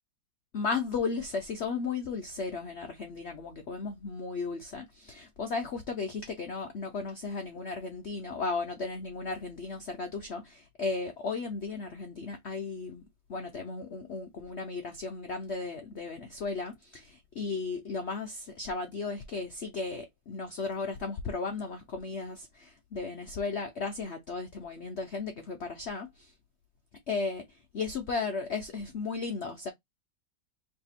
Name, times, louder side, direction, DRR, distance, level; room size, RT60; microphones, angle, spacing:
voice 1, 0.5-13.0 13.3-26.3 27.1-29.7, left 4 dB, 85° left, 0.5 m, -35 dB
3.3 x 2.7 x 4.1 m
omnidirectional pair, 2.0 m